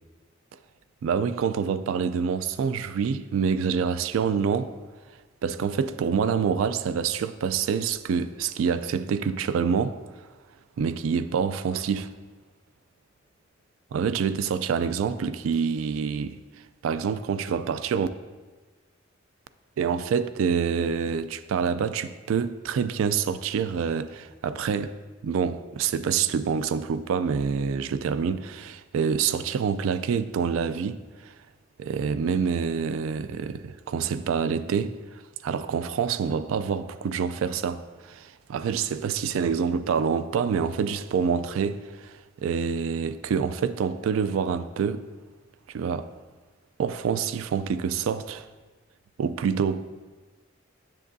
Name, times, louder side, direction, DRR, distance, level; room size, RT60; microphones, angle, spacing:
voice 1, 1.0-4.7 5.4-10.0 10.8-12.1 13.9-16.3 16.8-18.1 19.8-24.9 25.2-31.3 31.8-35.0 35.4-45.0 45.7-46.1 46.8-48.5 49.2-49.9, right 6 dB, 90° right, 0.3 m, -26 dB
7.5 x 6.8 x 2.6 m
head